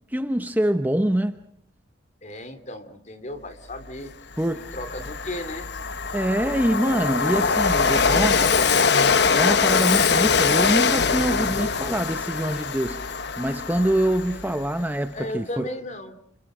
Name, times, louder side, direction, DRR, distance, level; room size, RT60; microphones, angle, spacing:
voice 1, 0.1-1.4 4.4-4.7 6.1-8.5 9.3-13.0 13.4-15.7, right 1 dB, 10° right, 0.9 m, -24 dB
voice 2, 2.2-4.1 4.5-5.7 15.1-16.2, left 1 dB, 35° left, 3.0 m, -36 dB
Train, 3.9-4.0 4.4-14.8, left 5 dB, 55° left, 1.1 m, -23 dB
29.5 x 28.5 x 5.0 m
head